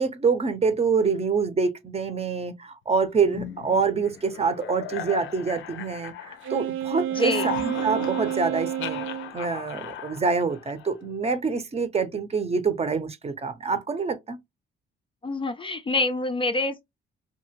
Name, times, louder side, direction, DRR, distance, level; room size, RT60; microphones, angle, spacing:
voice 1, 0.0-9.0 9.3-14.4, right 5 dB, 30° right, 0.7 m, -26 dB
sound 1, 3.2-6.7 7.0-11.1, left 9 dB, 80° left, 0.5 m, -37 dB
Wind instrument woodwind instrument, 6.4-9.3, right 11 dB, 75° right, 0.5 m, -29 dB
voice 2, 7.1-7.5 15.2-16.8, left 3 dB, 25° left, 0.4 m, -26 dB
2.8 x 2.6 x 2.9 m
cardioid pair, 90°, 20 cm